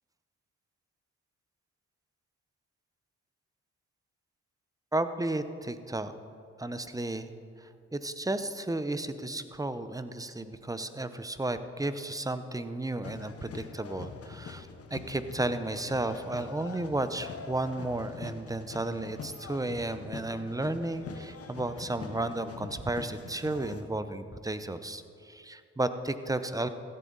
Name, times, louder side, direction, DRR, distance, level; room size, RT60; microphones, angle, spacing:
voice 1, 4.9-6.1 6.6-7.3 7.6-26.7, right 2 dB, 10° right, 11 dB, 0.7 m, -33 dB
sound 1, 13.0-23.8, left 5 dB, 55° left, 1.1 m, -44 dB
15.5 x 9.6 x 4.0 m, 2.5 s
cardioid pair, 65°, 29 cm